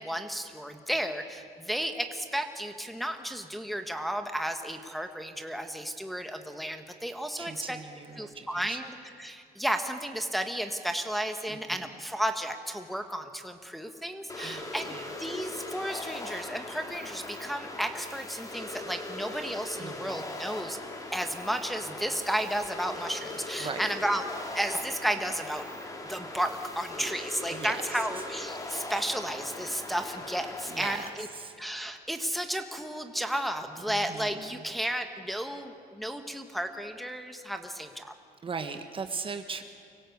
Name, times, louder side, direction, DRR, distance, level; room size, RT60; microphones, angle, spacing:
voice 1, 0.0-7.8 8.2-20.8 21.1-24.2 24.5-25.6 26.0-31.3 31.6-38.1, equal, ahead, 5 dB, 1.5 m, -33 dB
voice 2, 7.4-8.8 11.5-11.8 14.4-15.1 19.8-20.3 23.6-23.8 27.0-27.1 27.5-27.8 30.7-31.0 31.3-31.5 33.9-34.5 38.4-39.6, right 5 dB, 30° right, 7 dB, 1.4 m, -39 dB
sound 1, 14.3-31.1, left 2 dB, 20° left, 2.7 m, -40 dB
25.0 x 16.5 x 8.1 m, 2.5 s
cardioid pair, 110°, 17 cm